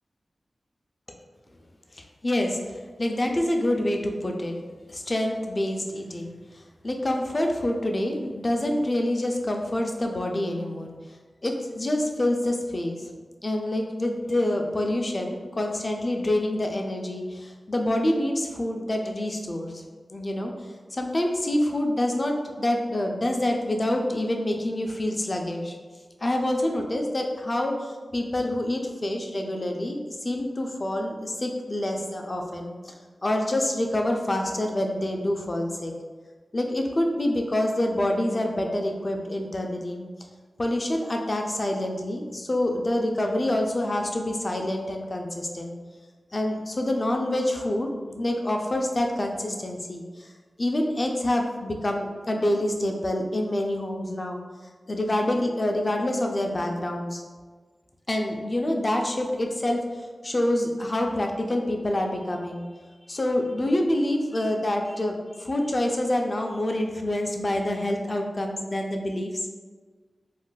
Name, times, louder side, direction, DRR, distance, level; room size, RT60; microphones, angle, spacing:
voice 1, 1.9-4.5 4.9-10.9 11.4-13.1 13.4-19.8 20.1-20.5 20.9-25.8 26.2-32.9 33.2-35.9 36.5-40.1 40.6-45.8 46.3-50.3 50.6-54.4 54.9-57.2 58.1-62.6 63.1-69.5, left 1 dB, 40° left, 2 dB, 0.4 m, -27 dB
2.5 x 2.2 x 3.8 m, 1.4 s
cardioid pair, 55°, 0 cm